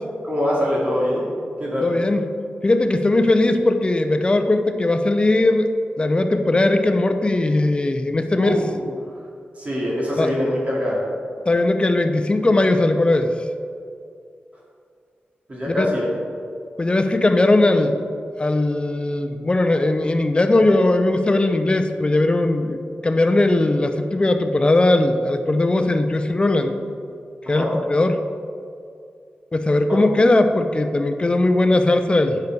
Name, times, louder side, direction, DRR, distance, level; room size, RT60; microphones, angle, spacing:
voice 1, 0.2-1.3 1.6-1.9 8.4-8.9 9.6-11.1 15.5-16.1 27.5-27.7 29.9-30.0, equal, 40° right, -5 dB, 2.3 m, -23 dB
voice 2, 1.8-2.2 2.6-5.7 6.0-8.7 10.2-10.3 11.5-13.3 15.7-15.9 16.8-18.0 18.4-26.8 27.5-28.2 29.5-32.4, left 2 dB, 25° left, 7 dB, 0.7 m, -19 dB
10.5 x 7.0 x 4.7 m, 2.4 s
wide cardioid pair, 85°, 4 cm